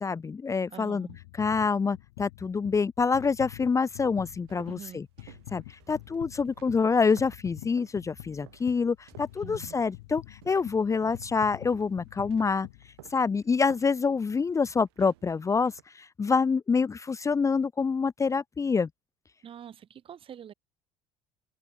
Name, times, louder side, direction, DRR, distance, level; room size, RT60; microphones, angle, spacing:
voice 1, 0.0-1.1 1.3-5.1 5.5-12.7 13.1-18.9, left 5 dB, 25° left, 0.7 m, -26 dB
voice 2, 0.7-1.2 4.7-5.0 9.4-9.7 19.4-20.5, right 9 dB, 45° right, 2.4 m, -45 dB
sound 1, 1.1-13.5 14.1-14.2, left 21 dB, 80° left, 1.5 m, -47 dB
sound 2, 3.7-8.0 8.4-8.7 9.1-15.8, right 21 dB, 80° right, 7.9 m, -54 dB
open air
hypercardioid pair, 70°, 13 cm